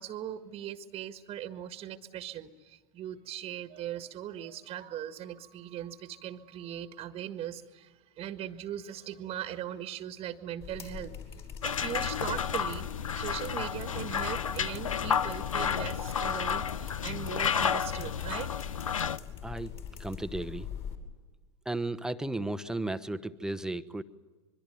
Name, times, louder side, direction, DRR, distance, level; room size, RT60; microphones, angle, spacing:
voice 1, 0.0-11.1 11.6-18.5, right 10 dB, 35° right, 10 dB, 1.7 m, -39 dB
sound 1, 10.6-21.0, left 8 dB, 35° left, 5.5 m, -43 dB
sound 2, 11.6-19.2, left 7 dB, 80° left, 0.8 m, -31 dB
voice 2, 20.0-20.7 21.6-24.0, right 2 dB, 5° right, 10 dB, 1.1 m, -34 dB
25.5 x 23.5 x 9.3 m, 1.3 s
hypercardioid pair, 95°, 17 cm